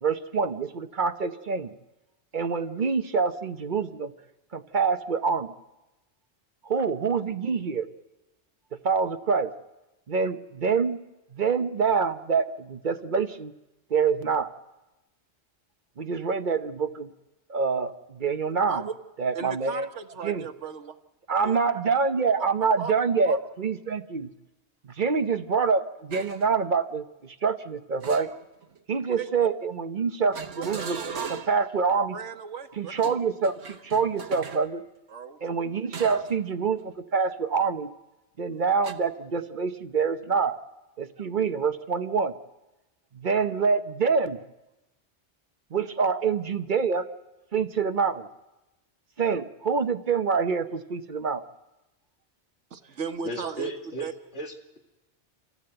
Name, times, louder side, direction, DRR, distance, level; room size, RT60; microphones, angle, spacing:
voice 1, 0.0-1.7 2.3-4.1 4.5-5.5 6.6-7.9 8.8-9.5 10.1-11.0 11.3-13.5 13.9-14.5 16.0-17.1 17.5-18.9 19.2-19.9 20.2-20.5 21.3-24.3 25.0-28.3 28.9-31.0 31.5-32.2 32.8-34.8 35.4-37.9 38.4-40.6 41.0-42.3 43.1-44.4 45.7-47.1 47.5-48.3 49.2-51.4, right 5 dB, 45° right, 9 dB, 0.9 m, -26 dB
voice 2, 19.3-21.0 21.4-21.6 22.8-22.9 23.3-23.4 29.2-29.3 30.6-30.7 30.9-31.3 32.1-32.9 35.1-35.4 52.7-53.7 54.0-54.1, right 5 dB, 90° right, 7 dB, 1.5 m, -36 dB
sound 1, 26.1-26.5 28.0-28.8 30.3-31.7 32.9-34.7 35.9-36.4 36.8-37.0 38.8-38.9, right 5 dB, 70° right, 1.4 m, -38 dB
voice 3, 53.2-54.8, right 2 dB, 85° left, 1 dB, 2.5 m, -35 dB
26.0 x 15.5 x 7.9 m, 1.0 s
omnidirectional pair, 1.2 m